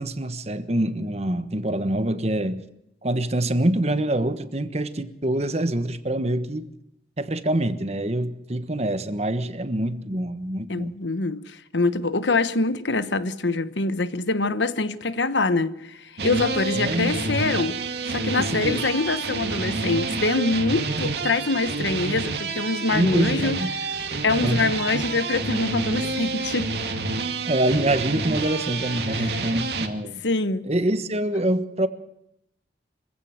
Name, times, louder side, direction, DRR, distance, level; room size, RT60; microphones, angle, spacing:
voice 1, 0.0-2.6 3.0-6.7 7.2-10.9 16.7-17.2 18.4-18.8 22.9-23.7 24.4-24.7 27.5-30.2 30.6-31.9, right 1 dB, 35° right, 1.3 m, -25 dB
voice 2, 10.7-17.8 18.1-23.9 24.2-26.7 29.1-29.4 30.2-30.7, left 3 dB, 80° left, 1.2 m, -25 dB
sound 1, 16.2-29.9, right 3 dB, 65° right, 2.3 m, -28 dB
25.0 x 16.0 x 7.9 m
head